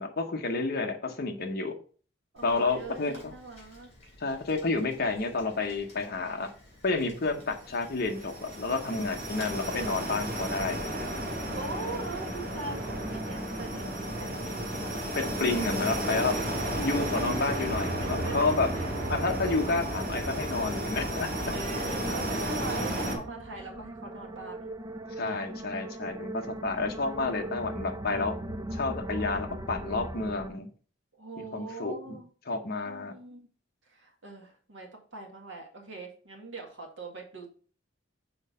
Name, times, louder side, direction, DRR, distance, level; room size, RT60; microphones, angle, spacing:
voice 1, 0.0-1.8 2.4-3.3 4.2-6.5 6.8-10.9 15.2-16.4 16.8-18.7 19.1-21.3 25.2-28.3 28.7-30.7 31.5-32.2 32.5-33.1, left 3 dB, 50° left, 3 dB, 0.9 m, -30 dB
voice 2, 2.3-3.9 11.5-14.7 17.0-17.7 18.0-18.4 18.7-18.9 21.5-24.7 31.1-32.3 32.8-33.5 33.8-37.6, right 3 dB, 65° right, 0 dB, 1.8 m, -42 dB
Rain, 2.4-9.5, left 1 dB, 35° left, 3.6 m, -53 dB
sound 1, 7.5-23.2, right 1 dB, 45° right, 2.0 m, -33 dB
sound 2, 12.7-30.5, right 1 dB, 20° right, 0.4 m, -39 dB
6.2 x 3.7 x 5.4 m, 0.42 s
head